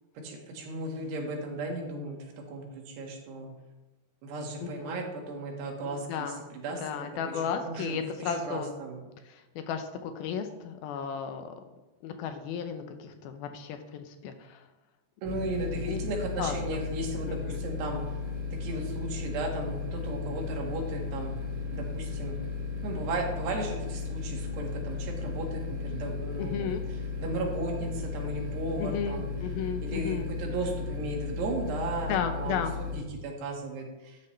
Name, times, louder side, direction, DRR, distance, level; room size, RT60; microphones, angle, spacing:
voice 1, 0.2-3.5 4.2-6.8 7.3-9.0 15.2-18.0 18.6-21.4 21.7-22.4 22.8-26.7 27.2-29.3 29.8-34.2, right 2 dB, 75° right, 1 dB, 3.8 m, -35 dB
voice 2, 4.6-5.2 5.8-6.5 6.8-8.7 9.3-11.5 12.0-14.7 15.6-16.0 16.4-16.8 17.3-17.6 26.4-26.8 28.8-30.3 32.1-32.7, left 7 dB, 75° left, 7 dB, 2.3 m, -34 dB
sound 1, 15.2-33.0, left 4 dB, 50° right, 1.3 m, -35 dB
13.5 x 9.7 x 3.3 m, 1.1 s
omnidirectional pair, 5.0 m